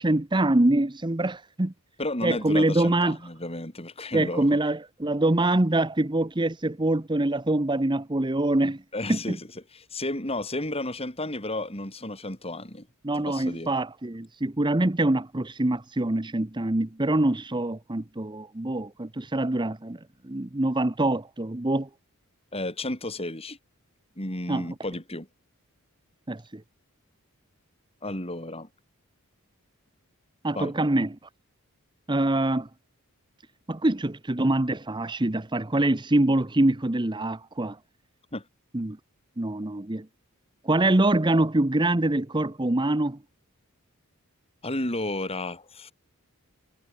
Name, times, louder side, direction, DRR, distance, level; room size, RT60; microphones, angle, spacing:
voice 1, 0.0-1.7 2.2-3.2 4.1-8.8 9.1-9.4 13.0-21.9 24.5-24.6 26.3-26.6 30.4-31.2 32.1-32.7 33.7-37.8 38.7-39.0 39.4-40.1 40.6-43.2, right 1 dB, 20° right, 0.9 m, -24 dB
voice 2, 2.0-4.4 8.9-12.9 13.1-13.7 22.5-23.6 24.2-25.3 28.0-28.7 30.5-30.7 38.3-38.4 44.6-45.9, left 1 dB, 25° left, 6.5 m, -32 dB
head